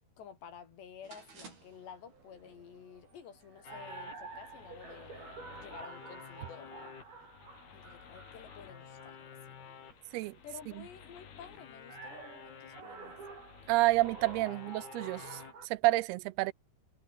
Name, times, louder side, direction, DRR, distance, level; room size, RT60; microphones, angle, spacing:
voice 1, 0.2-7.0 7.7-9.6 10.4-13.2, left 7 dB, 90° left, 5.8 m, -52 dB
sound 1, 1.0-15.7, right 4 dB, 60° right, 9.0 m, -50 dB
sound 2, 3.6-15.5, left 8 dB, 70° left, 5.3 m, -52 dB
voice 2, 13.7-15.4 15.7-16.5, right 20 dB, 80° right, 2.5 m, -29 dB
omnidirectional pair, 4.8 m